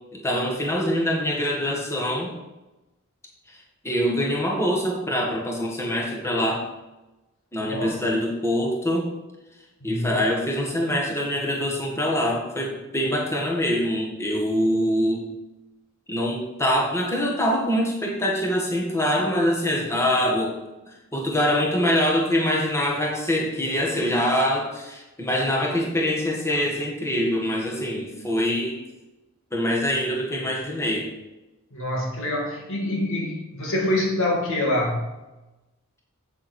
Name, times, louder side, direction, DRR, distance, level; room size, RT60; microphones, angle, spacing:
voice 1, 0.1-2.3 3.8-6.6 7.5-9.1 9.8-15.3 16.1-20.5 21.1-28.8 29.5-31.1, equal, 15° left, -2 dB, 1.7 m, -24 dB
voice 2, 7.6-8.0 9.8-10.1 31.7-35.2, left 1 dB, 65° left, -1 dB, 2.4 m, -26 dB
8.1 x 7.5 x 4.4 m, 1.0 s
head